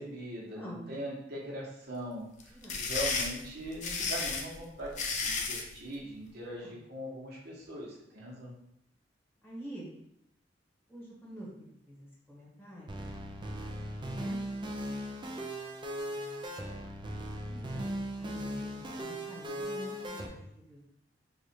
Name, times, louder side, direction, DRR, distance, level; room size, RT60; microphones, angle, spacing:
voice 1, 0.0-8.5, equal, 60° right, -4 dB, 1.0 m, -41 dB
voice 2, 0.5-0.8 2.5-2.9 6.6-6.8 9.4-9.9 10.9-13.0 14.1-15.0 16.0-16.4 17.5-17.9 18.2-20.8, equal, 10° left, -7 dB, 1.3 m, -47 dB
sound 1, 2.4-5.7, left 4 dB, 40° left, 0.5 m, -33 dB
sound 2, 12.9-20.3, equal, 25° right, 0.5 m, -38 dB
3.3 x 2.4 x 4.3 m, 0.78 s
head